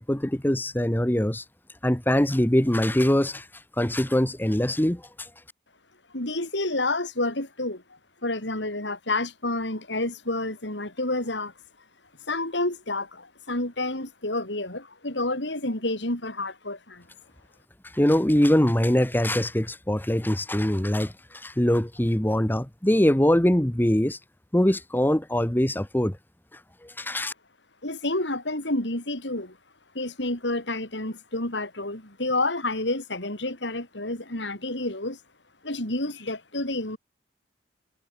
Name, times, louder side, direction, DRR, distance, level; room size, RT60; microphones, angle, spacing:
voice 1, 0.0-1.4 1.8-3.5 3.8-5.3 17.8-24.2 24.5-26.2 26.8-27.3, left 1 dB, 10° left, 1.1 m, -23 dB
voice 2, 6.1-7.8 8.2-11.5 12.3-17.1 27.8-29.6 29.9-35.2 35.6-37.0, left 2 dB, 80° left, 6.6 m, -29 dB
head